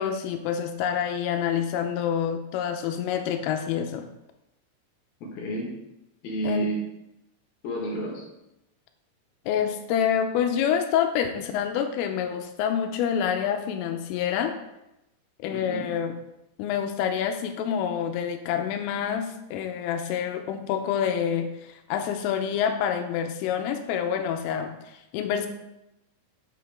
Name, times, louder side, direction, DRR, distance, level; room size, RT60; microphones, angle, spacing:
voice 1, 0.0-4.1 6.4-6.7 9.5-14.5 15.4-16.1 16.6-25.5, left 8 dB, 85° left, 7 dB, 3.3 m, -27 dB
voice 2, 5.2-5.7 6.2-6.8 7.6-8.2 15.5-15.9, right 2 dB, 65° left, -1 dB, 2.8 m, -30 dB
9.2 x 7.9 x 3.6 m, 0.90 s
omnidirectional pair, 5.9 m